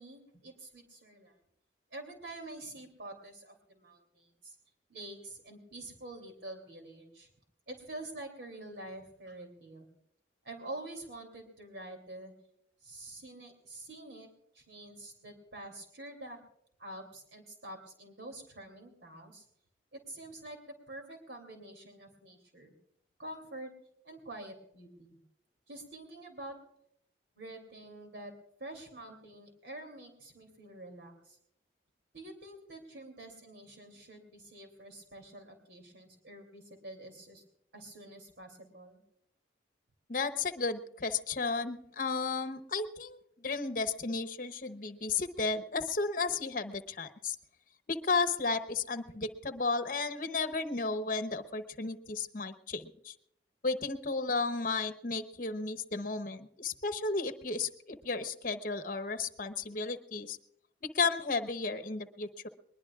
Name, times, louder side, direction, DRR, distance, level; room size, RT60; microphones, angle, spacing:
voice 1, 0.0-1.4 1.9-4.6 4.9-7.3 7.7-9.9 10.4-12.3 12.8-14.3 14.5-16.4 16.8-19.5 19.9-22.7 23.2-23.7 24.0-25.2 25.7-26.5 27.3-28.3 28.6-31.4 32.1-37.4 37.7-39.0, right 1 dB, 75° right, 3 dB, 3.0 m, -47 dB
voice 2, 40.1-47.4 47.9-53.1 53.6-60.4 60.8-62.5, left 4 dB, 45° left, 10 dB, 0.9 m, -33 dB
21.0 x 21.0 x 2.4 m, 0.71 s
head